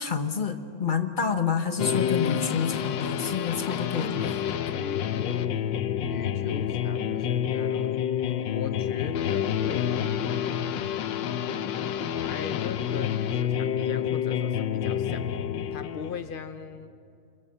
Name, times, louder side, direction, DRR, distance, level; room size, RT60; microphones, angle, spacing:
voice 1, 0.0-4.4, left 6 dB, 30° left, 7 dB, 1.2 m, -28 dB
sound 1, 1.8-16.2, left 9 dB, 85° left, 1.5 m, -28 dB
voice 2, 4.7-5.6 6.1-8.0 8.4-10.3 10.8-11.3 12.3-15.3 15.7-16.9, left 6 dB, 65° left, 9 dB, 0.5 m, -39 dB
28.5 x 23.0 x 6.8 m, 2.4 s
omnidirectional pair, 1.9 m